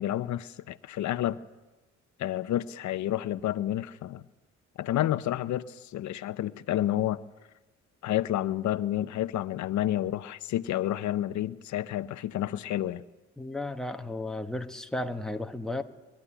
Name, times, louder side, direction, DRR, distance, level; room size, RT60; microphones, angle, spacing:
voice 1, 0.0-1.4 2.2-4.2 4.8-7.2 8.0-13.0, left 13 dB, 70° left, 14 dB, 0.7 m, -30 dB
voice 2, 13.4-15.8, left 2 dB, ahead, 5 dB, 1.2 m, -34 dB
22.0 x 13.0 x 9.9 m, 1.2 s
cardioid pair, 90°, 30 cm